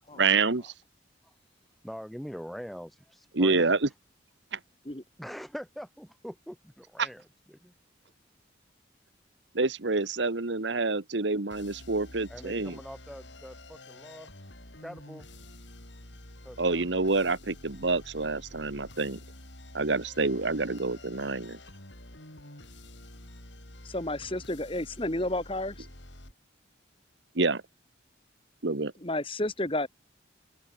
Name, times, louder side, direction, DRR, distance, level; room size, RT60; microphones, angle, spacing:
voice 1, 0.2-0.7 3.3-3.9 4.5-4.6 7.0-7.1 9.5-12.8 16.6-19.2 19.7-21.6 27.3-27.6 28.6-28.9, right 3 dB, 70° right, 1.3 m, -27 dB
voice 2, 1.8-3.8 5.2-7.2 7.5-7.7 12.3-14.3 14.8-15.3 16.4-16.8, equal, ahead, 6.3 m, -43 dB
sound 1, 11.5-26.3, left 1 dB, 70° left, 6.3 m, -49 dB
voice 3, 23.9-25.7 29.0-29.9, left 1 dB, 30° left, 2.7 m, -31 dB
open air
head